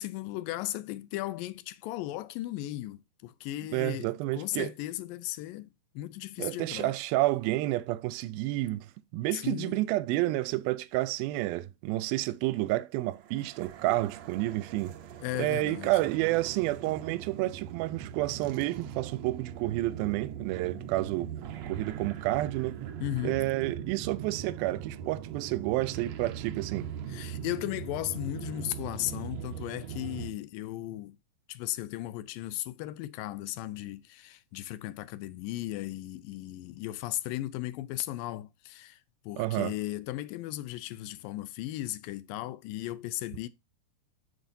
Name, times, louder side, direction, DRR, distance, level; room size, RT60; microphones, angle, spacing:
voice 1, 0.0-4.1 4.3-7.0 9.3-9.8 15.2-16.0 23.0-23.4 27.1-31.2 31.5-39.0 39.3-43.5, left 15 dB, 80° left, 2.2 m, -36 dB
voice 2, 3.7-4.7 6.4-8.9 9.1-15.0 15.4-21.3 21.7-22.9 23.2-26.9 39.4-39.7, right 17 dB, 90° right, 2.4 m, -30 dB
sound 1, 13.1-30.3, right 9 dB, 70° right, 1.6 m, -41 dB
9.1 x 6.8 x 2.7 m
omnidirectional pair, 4.2 m